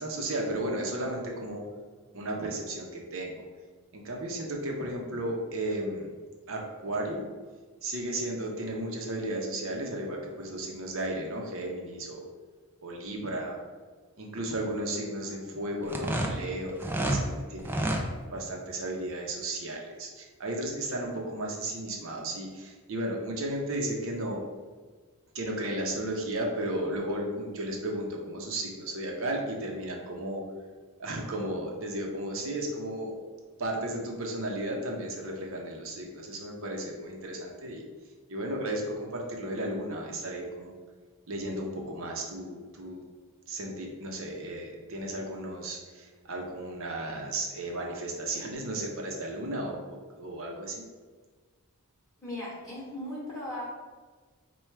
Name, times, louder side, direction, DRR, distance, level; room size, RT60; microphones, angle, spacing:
voice 1, 0.0-1.6 2.1-3.3 3.9-6.1 6.5-7.3 7.8-12.3 12.8-13.6 14.2-17.8 18.3-24.4 25.3-30.4 31.0-33.2 33.6-37.8 38.3-40.8 41.3-43.0 43.5-50.8, right 1 dB, 60° right, 0 dB, 0.7 m, -34 dB
sound 1, 15.8-17.2 17.6-18.0, right 1 dB, 10° right, 0.3 m, -29 dB
voice 2, 52.2-53.6, left 1 dB, 15° left, -8 dB, 1.0 m, -37 dB
4.3 x 2.3 x 4.5 m, 1.4 s
head